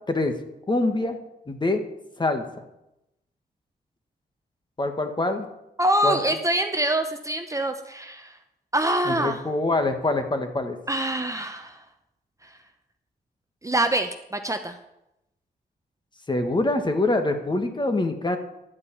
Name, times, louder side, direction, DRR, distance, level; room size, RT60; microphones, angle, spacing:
voice 1, 0.7-1.2 1.5-1.8 2.2-2.6 4.8-5.5 6.0-6.2 9.1-10.8 16.3-18.4, left 2 dB, 25° left, 6 dB, 1.5 m, -24 dB
voice 2, 5.8-8.4 8.7-9.4 10.9-11.8 12.4-12.6 13.6-14.8, right 1 dB, 20° right, 6 dB, 0.8 m, -25 dB
11.0 x 5.2 x 8.5 m, 0.88 s
cardioid pair, 80°, 17 cm